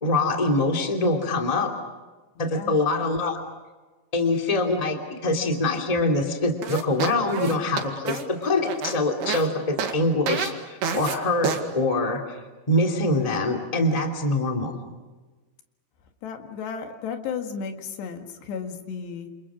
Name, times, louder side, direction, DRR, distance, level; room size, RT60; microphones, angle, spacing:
voice 1, 0.0-1.7 2.4-3.4 4.1-10.5 10.9-12.2 12.7-14.8, left 2 dB, 10° left, 3 dB, 2.0 m, -24 dB
voice 2, 2.4-2.8 16.2-19.3, left 6 dB, 80° left, 5 dB, 4.0 m, -34 dB
sound 1, 6.6-9.5 9.8-10.0 10.3-10.5 10.8-11.2 11.4-11.6, right 7 dB, 75° right, 4.1 m, -28 dB
29.0 x 27.5 x 6.2 m, 1.2 s
omnidirectional pair, 4.8 m